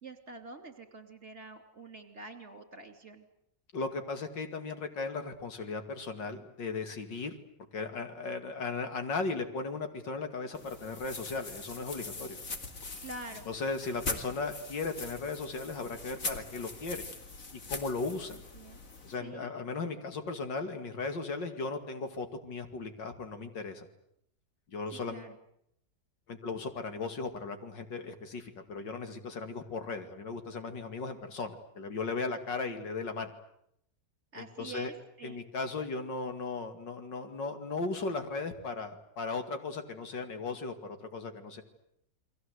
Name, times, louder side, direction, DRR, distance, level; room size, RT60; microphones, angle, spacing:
voice 1, 0.0-3.3 13.0-13.5 18.3-18.8 19.2-19.5 24.9-25.4 34.3-35.4, right 3 dB, 40° right, 7 dB, 3.3 m, -46 dB
voice 2, 3.7-7.4 7.7-12.4 13.5-17.0 17.5-18.4 19.0-23.9 24.7-25.3 26.3-33.3 34.3-34.9 35.2-41.6, left 3 dB, 85° left, 7 dB, 3.0 m, -37 dB
sound 1, 10.5-19.1, left 3 dB, 45° left, 2.8 m, -42 dB
29.5 x 22.0 x 8.2 m, 0.75 s
omnidirectional pair, 1.9 m